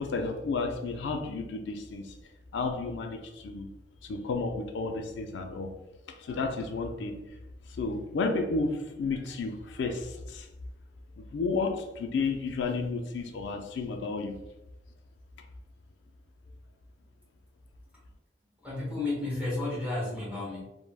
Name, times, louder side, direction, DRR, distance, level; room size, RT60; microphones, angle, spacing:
voice 1, 0.0-2.1 2.5-3.7 4.0-5.7 6.2-7.2 7.7-10.5 11.2-14.4, left 3 dB, 80° left, 4 dB, 0.3 m, -32 dB
voice 2, 18.6-20.7, left 2 dB, 5° right, -7 dB, 1.0 m, -32 dB
3.3 x 2.1 x 2.2 m, 0.92 s
head